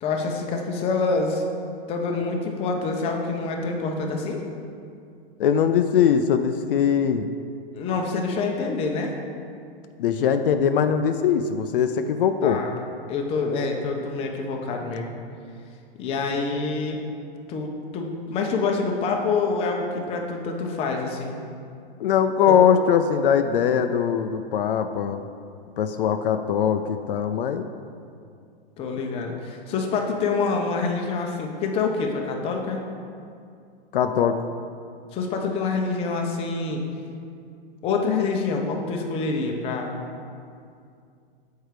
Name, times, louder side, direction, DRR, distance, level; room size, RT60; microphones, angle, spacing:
voice 1, 0.0-1.4 1.9-4.4 7.7-9.1 12.4-12.8 13.1-15.1 16.0-17.0 17.5-21.4 22.5-22.6 28.8-32.8 35.1-36.8 37.8-40.0, left 4 dB, 20° left, 2 dB, 0.6 m, -26 dB
voice 2, 5.4-7.3 10.0-12.6 22.0-25.2 25.8-27.7 33.9-34.5, left 8 dB, 65° left, 8 dB, 0.4 m, -21 dB
6.5 x 4.5 x 4.8 m, 2.4 s
hypercardioid pair, 140°, 29 cm